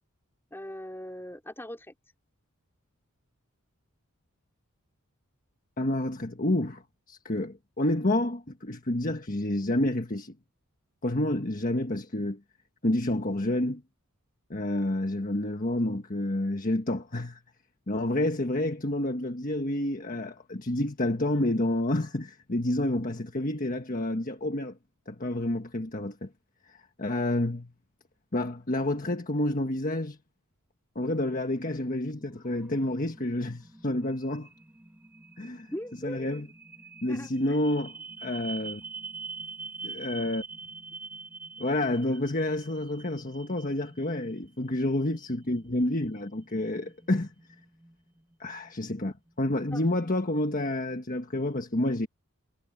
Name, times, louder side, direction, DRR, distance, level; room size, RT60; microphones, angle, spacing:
voice 1, 0.5-1.9 35.7-36.4 37.1-37.3 49.7-49.9, equal, 10° left, 4.4 m, -40 dB
voice 2, 5.8-10.3 11.0-12.4 12.8-13.8 14.5-17.4 17.9-24.8 25.1-26.3 26.6-27.7 28.3-30.2 30.9-34.5 35.4-35.7 36.0-36.5 37.0-37.9 38.2-38.8 39.8-40.4 41.6-47.3 48.4-52.1, left 1 dB, 40° left, 1.5 m, -29 dB
sound 1, 32.0-49.7, right 4 dB, 10° right, 2.9 m, -46 dB
head